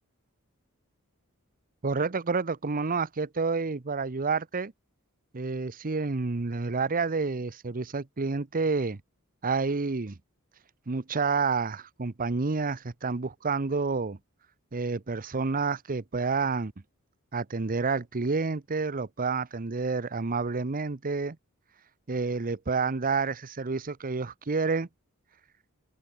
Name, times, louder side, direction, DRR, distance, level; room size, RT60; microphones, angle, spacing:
voice 1, 1.8-4.7 5.3-9.0 9.4-10.2 10.9-14.2 14.7-16.7 17.3-21.4 22.1-24.9, right 4 dB, 40° right, 0.8 m, -29 dB
open air
head